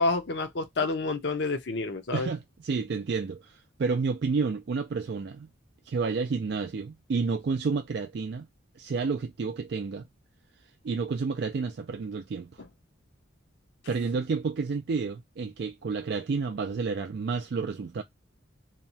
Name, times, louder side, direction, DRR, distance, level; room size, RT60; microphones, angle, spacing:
voice 1, 0.0-2.3, left 3 dB, 55° left, 0.6 m, -28 dB
voice 2, 2.1-5.5 5.9-8.5 8.8-10.1 10.8-12.5 13.9-18.0, right 4 dB, 55° right, 0.4 m, -30 dB
2.8 x 2.2 x 2.7 m
head